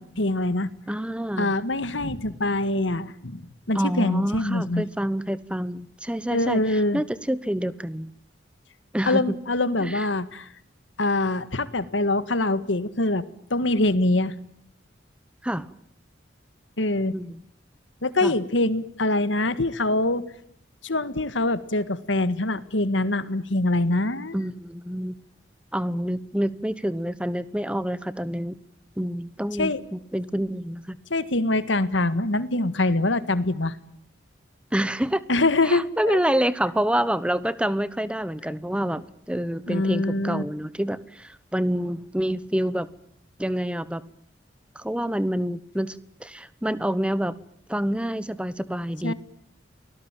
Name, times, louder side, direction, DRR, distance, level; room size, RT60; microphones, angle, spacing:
voice 1, 0.0-0.7 1.4-4.9 6.3-7.0 9.1-10.5 11.0-13.2 13.5-14.3 16.8-17.1 18.0-20.2 20.8-24.4 29.6-29.8 31.1-33.8 35.3-36.2 39.7-40.4 49.0-49.1, left 2 dB, 90° left, 14 dB, 1.7 m, -24 dB
voice 2, 0.9-1.5 3.7-8.1 8.9-9.3 9.8-10.0 15.4-15.7 17.1-17.4 18.2-18.3 24.3-25.1 25.7-28.5 29.0-31.0 34.7-35.2 35.6-42.9 43.4-44.0 44.7-47.3 47.7-49.1, equal, 5° right, 16 dB, 1.0 m, -27 dB
29.5 x 19.5 x 9.1 m, 0.73 s
head